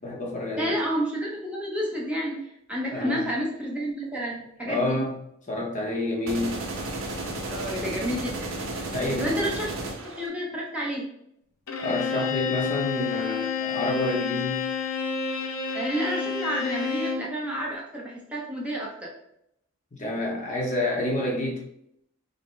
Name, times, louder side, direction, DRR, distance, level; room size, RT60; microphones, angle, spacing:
voice 1, 0.0-0.8 2.9-3.3 4.7-5.1 5.5-6.6 8.9-9.4 11.8-14.6 19.9-21.7, left 1 dB, 35° left, -1 dB, 0.8 m, -28 dB
voice 2, 0.6-2.4 2.7-5.0 7.5-8.5 9.2-9.7 10.0-11.0 15.7-18.9, equal, 5° right, -4 dB, 0.7 m, -30 dB
sound 1, 6.3-10.3, right 2 dB, 65° right, 0.8 m, -33 dB
Bowed string instrument, 11.7-17.3, left 6 dB, 85° left, 0.7 m, -29 dB
5.2 x 2.1 x 3.1 m, 0.74 s
head